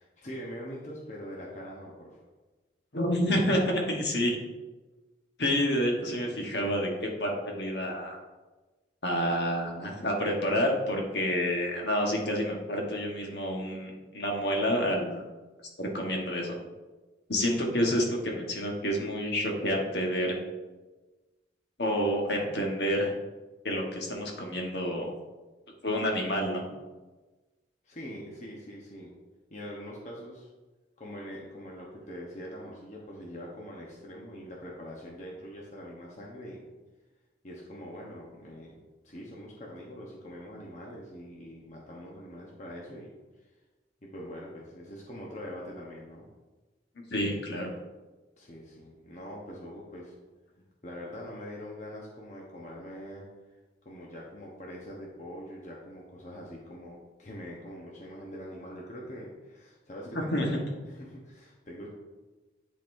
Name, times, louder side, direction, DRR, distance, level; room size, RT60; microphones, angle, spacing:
voice 1, 0.0-2.2 27.8-29.1 29.5-30.5 31.0-36.6 37.4-38.7 39.0-43.1 44.0-46.3 48.4-50.1 50.8-53.3 53.8-60.6 60.8-61.9, equal, 40° left, -3 dB, 0.9 m, -43 dB
voice 2, 2.9-4.4 5.4-8.2 9.0-15.2 15.8-16.6 17.3-20.4 21.8-23.1 23.6-25.1 25.8-26.7 47.1-47.7 60.1-60.6, equal, 65° left, 0 dB, 1.2 m, -29 dB
10.5 x 4.0 x 2.6 m, 1.2 s
head